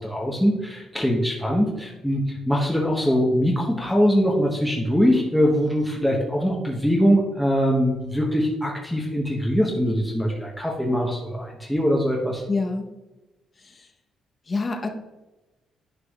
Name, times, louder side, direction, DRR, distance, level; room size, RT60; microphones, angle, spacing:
voice 1, 0.0-12.4, equal, 5° left, -2 dB, 1.0 m, -22 dB
voice 2, 12.5-12.8 13.6-13.9 14.5-14.9, left 3 dB, 35° left, 5 dB, 0.9 m, -26 dB
9.8 x 4.7 x 2.4 m, 1.1 s
cardioid pair, 90°, 0 cm